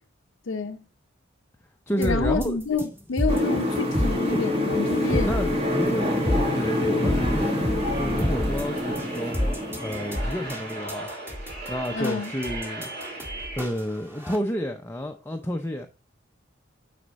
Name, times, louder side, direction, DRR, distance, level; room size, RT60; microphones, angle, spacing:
voice 1, 0.5-0.8 2.0-5.3 11.9-12.3, left 4 dB, 80° left, 0.6 m, -28 dB
voice 2, 1.9-2.6 5.2-9.4 9.8-11.1 11.7-12.9 13.6-15.9, equal, 10° left, 0.6 m, -30 dB
sound 1, 2.0-14.4, equal, 10° right, 1.8 m, -29 dB
sound 2, 3.3-10.9, left 1 dB, 30° right, 1.7 m, -27 dB
sound 3, 5.0-13.6, right 2 dB, 50° right, 3.9 m, -39 dB
9.6 x 4.2 x 4.0 m
head